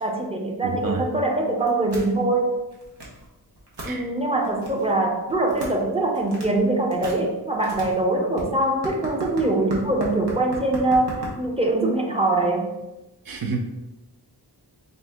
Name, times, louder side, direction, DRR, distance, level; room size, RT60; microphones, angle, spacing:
voice 1, 0.0-2.6 3.8-12.8, right 2 dB, 15° right, 1 dB, 0.6 m, -23 dB
sound 1, 1.6-2.1 2.6-3.2 3.5-3.9 4.4-4.9 5.3-5.8 6.1-6.6 6.9-11.7, right 2 dB, 75° right, 1.2 m, -36 dB
voice 2, 13.3-13.6, right 4 dB, 60° right, 4 dB, 0.7 m, -28 dB
4.0 x 2.7 x 3.5 m, 1.0 s
wide cardioid pair, 95°, 40 cm